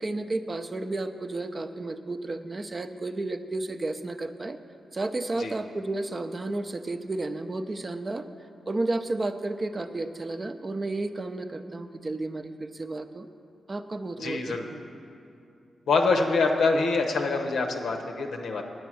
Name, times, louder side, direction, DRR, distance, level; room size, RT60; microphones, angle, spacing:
voice 1, 0.0-4.6 4.9-8.3 8.7-13.3 13.7-14.8, right 2 dB, 35° right, 9 dB, 0.5 m, -32 dB
voice 2, 14.2-14.7 15.9-18.6, left 3 dB, 85° left, 3 dB, 0.9 m, -25 dB
9.3 x 7.8 x 6.1 m, 2.6 s
cardioid pair, 85°, 0 cm